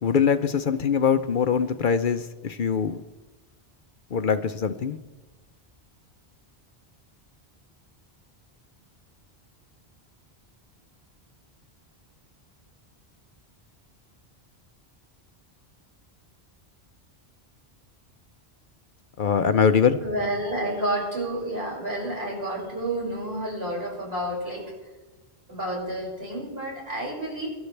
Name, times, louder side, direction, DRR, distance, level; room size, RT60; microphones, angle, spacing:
voice 1, 0.0-3.0 4.1-5.0 19.2-20.0, left 6 dB, 60° left, 10 dB, 0.7 m, -22 dB
voice 2, 20.0-24.7 25.5-27.5, right 1 dB, 65° right, -5 dB, 5.9 m, -30 dB
25.0 x 12.0 x 3.3 m, 1.2 s
omnidirectional pair, 1.1 m